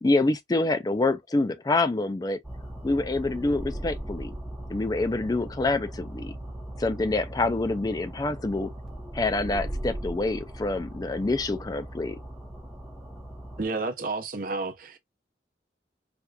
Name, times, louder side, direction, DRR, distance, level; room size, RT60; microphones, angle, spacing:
voice 1, 0.0-2.4 2.8-4.3 4.7-6.4 6.8-8.7 9.1-12.2, left 2 dB, 20° left, 0.4 m, -26 dB
sound 1, 2.4-13.7, right 1 dB, 5° right, 1.0 m, -38 dB
voice 2, 13.6-15.0, right 3 dB, 50° right, 0.7 m, -31 dB
4.3 x 2.4 x 2.3 m
head